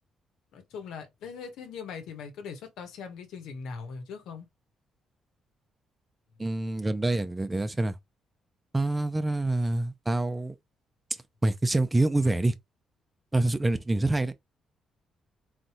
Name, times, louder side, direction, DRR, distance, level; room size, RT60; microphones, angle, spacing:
voice 1, 0.5-4.5, left 5 dB, 85° left, 1.2 m, -40 dB
voice 2, 6.4-8.0 8.7-10.5 11.4-12.5 13.3-14.3, right 2 dB, 15° right, 0.7 m, -26 dB
4.1 x 3.3 x 3.0 m
cardioid pair, 90°, 0 cm